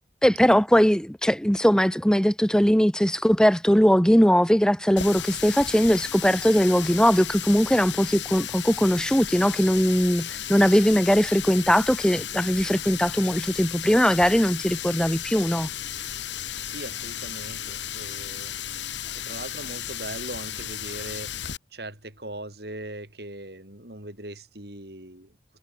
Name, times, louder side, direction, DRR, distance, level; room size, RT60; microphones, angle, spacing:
voice 1, 0.2-15.7, equal, 5° left, 1.2 m, -20 dB
Water tap faucet, 5.0-21.6, left 10 dB, 80° left, 2.1 m, -34 dB
voice 2, 16.4-18.7 19.1-21.3 21.7-25.3, right 1 dB, 60° right, 7.8 m, -40 dB
head